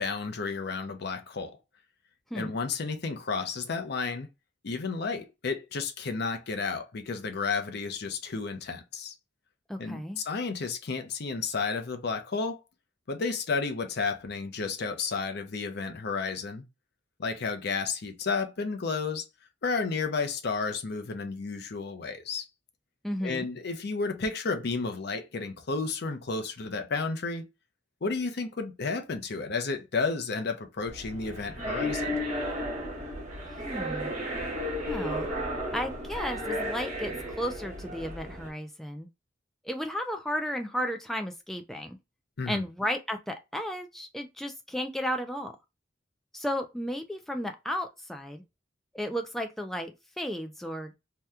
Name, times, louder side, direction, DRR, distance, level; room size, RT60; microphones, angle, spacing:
voice 1, 0.0-1.6 2.3-4.3 4.6-9.1 9.8-12.6 13.1-16.6 17.2-19.3 19.6-22.5 23.2-27.4 28.0-32.2 42.4-42.6, left 4 dB, 60° left, 0.6 m, -32 dB
voice 2, 9.7-10.2 23.0-23.5 33.7-34.1 34.8-35.3 35.7-39.1 39.6-42.0 42.5-45.5 46.3-48.4 48.9-49.9 50.2-50.9, equal, ahead, 0.3 m, -34 dB
sound 1, 30.9-38.5, equal, 40° right, 1.1 m, -34 dB
2.8 x 2.2 x 3.5 m
head